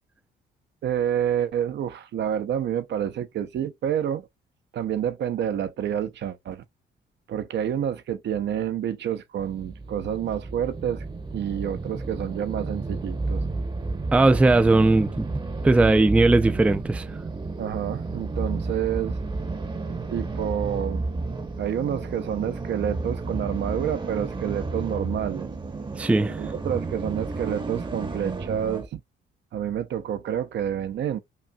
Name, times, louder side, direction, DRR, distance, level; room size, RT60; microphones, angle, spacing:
voice 1, 0.8-4.3 4.7-6.6 7.3-11.0 11.3-13.4 17.6-19.2 20.1-21.0 21.6-25.5 26.4-29.0 29.5-31.2, right 9 dB, 60° right, 0.5 m, -28 dB
sound 1, 9.4-28.9, right 3 dB, 25° right, 0.8 m, -32 dB
voice 2, 14.1-15.3 15.6-17.0 26.0-26.4, right 2 dB, 5° right, 0.3 m, -18 dB
5.3 x 2.5 x 2.2 m
cardioid pair, 90°, 20 cm